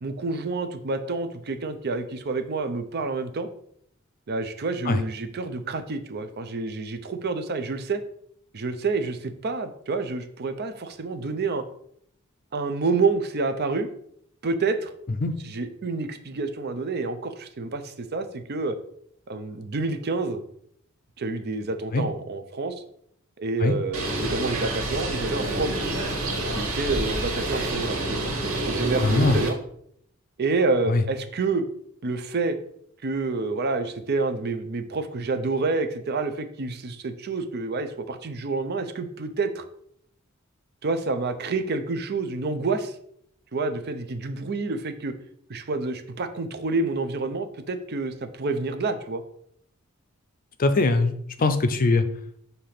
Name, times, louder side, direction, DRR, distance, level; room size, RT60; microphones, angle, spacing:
voice 1, 0.0-3.5 4.3-8.0 8.5-11.6 12.5-13.9 14.4-14.9 15.4-18.7 19.3-20.4 21.2-22.8 23.4-25.8 26.5-29.6 30.4-31.6 32.0-32.6 33.0-39.6 40.8-43.0 43.5-45.1 45.5-49.2, right 3 dB, 50° right, 9 dB, 0.6 m, -28 dB
Bird, 23.9-29.5, right 1 dB, 85° right, 1.9 m, -28 dB
voice 2, 29.0-29.4 30.9-31.0 50.6-51.1 51.4-52.1, left 2 dB, 40° left, 10 dB, 0.5 m, -21 dB
6.6 x 2.8 x 5.8 m, 0.69 s
head